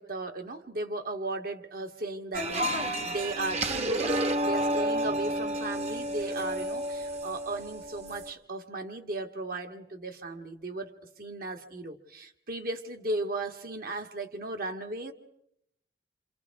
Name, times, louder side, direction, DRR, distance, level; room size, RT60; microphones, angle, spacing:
voice 1, 0.0-15.1, right 2 dB, 55° right, 6 dB, 1.9 m, -36 dB
sound 1, 2.3-8.3, right 1 dB, 40° right, 1.3 m, -30 dB
28.0 x 28.0 x 4.8 m, 0.77 s
head